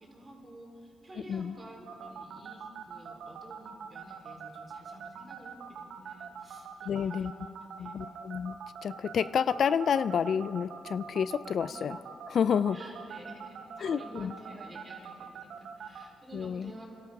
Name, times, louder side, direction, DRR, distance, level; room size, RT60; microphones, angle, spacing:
voice 1, 0.0-8.2 11.6-11.9 12.7-16.9, right 1 dB, 30° right, -1 dB, 3.9 m, -51 dB
sound 1, 1.9-16.0, right 7 dB, 65° right, 0.8 m, -43 dB
voice 2, 6.9-7.3 7.8-8.6 8.8-12.0 12.3-12.8 13.8-14.3 16.3-16.7, left 7 dB, 55° left, 15 dB, 0.3 m, -29 dB
29.5 x 12.5 x 3.6 m, 2.6 s
cardioid pair, 90°, 0 cm